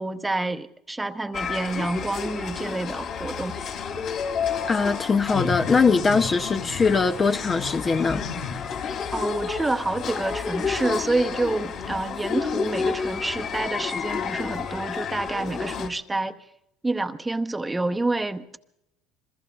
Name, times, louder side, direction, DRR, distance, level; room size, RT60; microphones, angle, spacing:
voice 1, 0.0-3.6 9.1-16.4 16.8-18.7, right 2 dB, 10° right, 0.8 m, -28 dB
sound 1, 1.3-15.9, left 6 dB, 50° left, 2.8 m, -30 dB
voice 2, 4.7-8.2, left 4 dB, 25° left, 0.6 m, -21 dB
27.5 x 21.5 x 2.3 m
cardioid pair, 130°, 0 cm